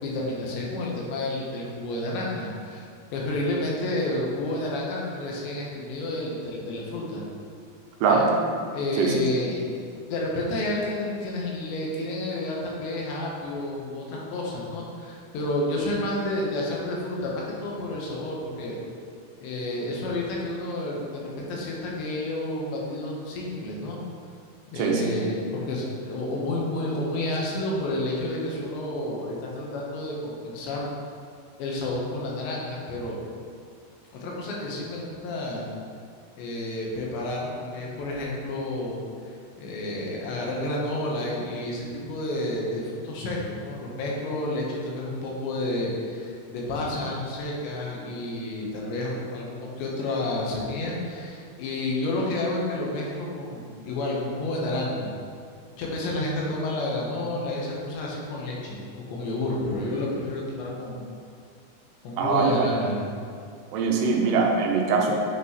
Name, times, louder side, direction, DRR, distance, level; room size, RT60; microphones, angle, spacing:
voice 1, 0.0-2.8 3.1-7.2 8.1-8.3 8.7-9.6 10.1-18.8 19.4-24.0 24.7-30.9 31.6-33.2 34.1-35.7 36.4-39.0 39.6-55.1 55.8-58.8 59.1-61.0 62.0-63.0, left 1 dB, 80° left, -3 dB, 3.4 m, -30 dB
voice 2, 9.0-9.4 24.8-25.1 62.2-62.7 63.7-65.1, right 4 dB, 80° right, 0 dB, 2.8 m, -22 dB
9.4 x 6.0 x 3.1 m, 2.3 s
omnidirectional pair, 5.1 m